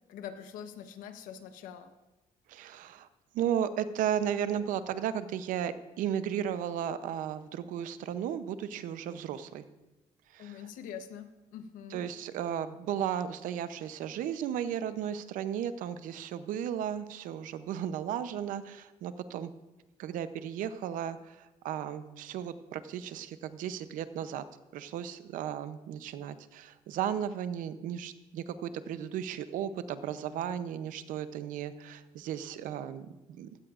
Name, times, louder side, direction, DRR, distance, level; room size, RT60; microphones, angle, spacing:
voice 1, 0.1-1.9 10.4-12.0, left 8 dB, 90° left, 8 dB, 1.0 m, -44 dB
voice 2, 2.5-3.1 3.3-9.6 10.3-10.6 11.9-19.5 20.0-24.4 24.7-33.5, right 9 dB, 80° right, 12 dB, 0.7 m, -35 dB
16.0 x 13.5 x 2.5 m, 1.0 s
cardioid pair, 120°, 14 cm